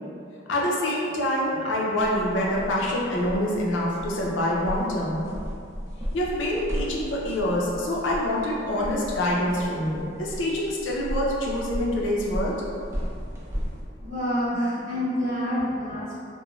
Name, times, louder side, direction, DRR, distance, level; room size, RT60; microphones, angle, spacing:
voice 1, 0.5-5.3 6.1-12.6 15.6-16.0, left 1 dB, 80° left, -4 dB, 0.5 m, -26 dB
sound 1, 2.0-13.8, equal, 15° right, 0.4 m, -35 dB
voice 2, 14.0-16.2, equal, 45° right, -10 dB, 0.9 m, -27 dB
3.0 x 2.1 x 2.3 m, 2.4 s
head